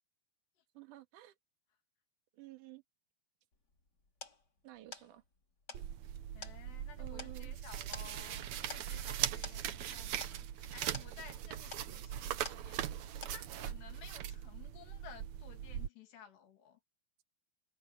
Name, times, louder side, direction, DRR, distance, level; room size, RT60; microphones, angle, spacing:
voice 1, 0.7-1.4 2.3-2.8 4.6-5.2 7.0-7.6, right 15 dB, 60° right, 2.8 m, -52 dB
sound 1, 3.5-13.0 13.2-13.8, left 3 dB, 25° left, 3.3 m, -51 dB
sound 2, 5.7-15.9, right 11 dB, 85° right, 1.6 m, -40 dB
voice 2, 6.3-16.8, left 8 dB, 80° left, 4.8 m, -56 dB
omnidirectional pair, 4.8 m